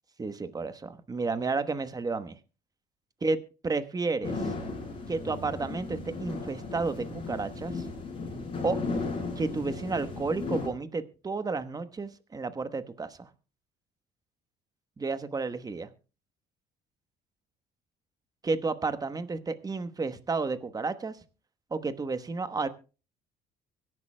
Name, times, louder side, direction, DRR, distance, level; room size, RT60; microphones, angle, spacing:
voice 1, 0.2-2.4 3.2-4.5 5.1-7.9 8.6-8.8 9.4-13.3 15.0-15.9 18.4-21.2 21.7-22.7, right 4 dB, 20° right, 1.1 m, -32 dB
sound 1, 4.2-10.7, left 3 dB, 35° left, 6.7 m, -35 dB
24.0 x 11.0 x 2.2 m
cardioid pair, 110°, 17 cm